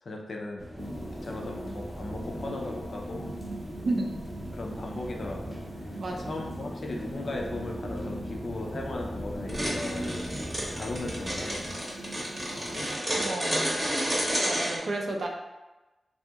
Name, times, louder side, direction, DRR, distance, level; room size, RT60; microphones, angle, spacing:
voice 1, 0.0-0.7 1.2-3.3 4.5-5.6 5.8-10.3 10.7-11.6 12.7-14.3, left 2 dB, 60° left, 1 dB, 0.4 m, -38 dB
sound 1, 0.6-11.7, equal, 10° left, 0.5 m, -39 dB
sound 2, 0.8-13.0, right 1 dB, 85° right, 0.7 m, -42 dB
sound 3, 9.5-14.8, right 1 dB, 30° right, 0.8 m, -30 dB
voice 2, 13.2-13.7 14.4-15.3, right 2 dB, 60° right, 2 dB, 0.4 m, -31 dB
2.7 x 2.7 x 2.3 m, 1.1 s
wide cardioid pair, 90°, 0 cm